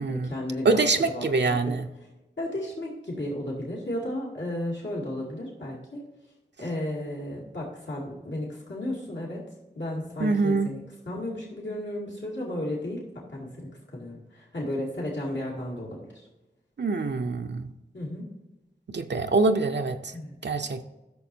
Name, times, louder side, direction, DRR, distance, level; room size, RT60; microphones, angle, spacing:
voice 1, 0.1-1.8 2.4-6.0 6.6-9.4 9.8-16.3 17.9-18.3 20.1-20.4, left 1 dB, 80° left, -5 dB, 2.3 m, -34 dB
voice 2, 0.6-1.8 10.2-10.7 16.8-17.7 18.9-20.1 20.4-20.8, right 3 dB, 70° right, 5 dB, 0.5 m, -24 dB
13.0 x 6.5 x 2.7 m, 1.0 s
wide cardioid pair, 50°, 19 cm